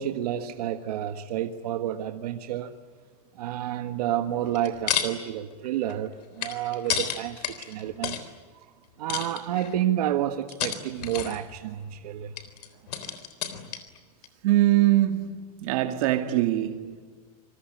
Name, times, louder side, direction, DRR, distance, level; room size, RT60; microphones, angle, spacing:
voice 1, 0.0-2.8 3.3-8.3 9.0-12.3, right 11 dB, 75° right, 1.6 m, -30 dB
sound 1, 4.5-5.1 5.5-8.3 9.1-9.8 10.5-11.6 12.4-14.0 14.2-14.3, left 9 dB, 85° left, 3.8 m, -31 dB
voice 2, 14.4-16.9, right 14 dB, 60° right, 2.2 m, -23 dB
27.0 x 23.0 x 9.3 m
supercardioid pair, 155°, 20 cm